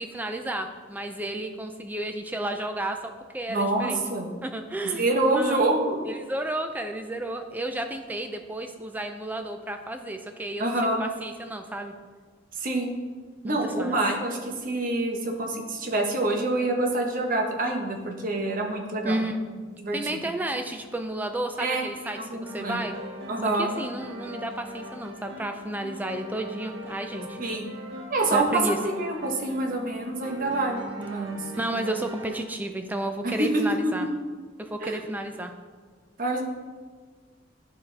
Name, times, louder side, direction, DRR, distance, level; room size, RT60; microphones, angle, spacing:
voice 1, 0.0-4.0 4.4-5.0 5.3-5.6 6.0-10.7 11.0-11.9 13.4-14.0 19.0-19.4 19.9-23.0 23.4-27.4 28.3-28.8 31.6-34.1 34.6-35.5, right 1 dB, 10° right, 6 dB, 0.3 m, -32 dB
voice 2, 3.5-4.3 4.9-6.0 10.6-11.0 12.6-12.9 13.4-19.2 19.8-20.2 21.6-21.8 22.1-22.8 23.3-23.7 27.4-27.7 28.1-31.4 33.2-33.5 34.8-35.0 36.2-36.4, right 2 dB, 45° right, 1 dB, 0.9 m, -26 dB
sound 1, 22.4-32.4, equal, 90° right, 1.2 m, -40 dB
11.0 x 4.0 x 3.3 m, 1.5 s
head